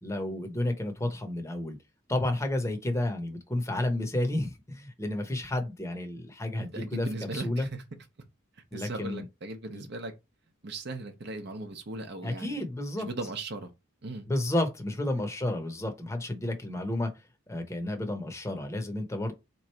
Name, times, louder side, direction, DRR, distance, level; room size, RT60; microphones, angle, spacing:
voice 1, 0.0-1.8 2.1-7.1 7.3-7.7 8.7-9.2 9.7-9.9 12.2-13.1 14.3-17.1 17.5-19.3, left 1 dB, 15° left, 0.8 m, -31 dB
voice 2, 6.6-7.8 8.7-10.1 10.6-12.7 13.0-13.7 14.0-14.3, right 2 dB, 55° right, 0.7 m, -38 dB
3.7 x 3.0 x 4.5 m
head